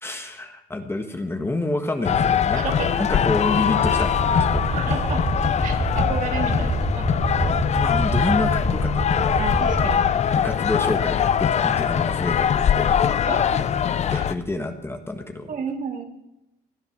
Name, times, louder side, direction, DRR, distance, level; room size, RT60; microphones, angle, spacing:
voice 1, 0.0-2.6 2.9-4.7 7.4-9.2 9.9-12.9 14.1-15.5, left 2 dB, 15° left, 6 dB, 1.4 m, -28 dB
sound 1, 2.0-14.3, left 8 dB, 40° left, 0.7 m, -22 dB
voice 2, 2.5-3.1 4.7-5.2 5.6-7.4 9.4-10.1 13.3-13.6 14.1-14.3 15.5-16.0, right 5 dB, 50° right, 3 dB, 2.8 m, -32 dB
sound 2, 3.8-10.0, right 3 dB, 15° right, 0.4 m, -27 dB
18.5 x 10.5 x 6.0 m, 0.90 s
cardioid pair, 110°, 17 cm